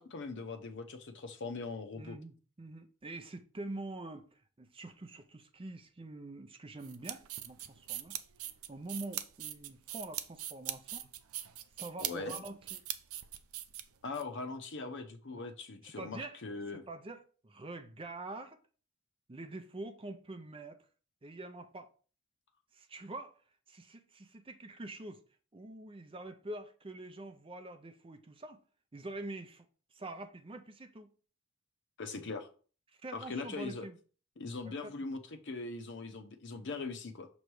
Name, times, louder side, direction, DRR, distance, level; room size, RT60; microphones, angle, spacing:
voice 1, 0.0-2.2 12.0-12.4 14.0-16.8 32.0-32.5 33.1-33.8 34.4-37.3, left 3 dB, 60° left, 0.8 m, -41 dB
voice 2, 1.9-8.3 8.7-11.1 11.8-12.8 15.3-15.5 15.8-16.4 16.7-18.6 19.3-20.8 21.2-21.9 22.7-23.4 23.7-25.2 25.5-28.6 28.9-29.7 29.9-31.1 32.9-34.0 34.6-34.9, right 2 dB, 25° right, 0.5 m, -45 dB
sound 1, 6.8-14.2, right 12 dB, 85° right, 0.5 m, -41 dB
6.4 x 3.1 x 4.7 m
head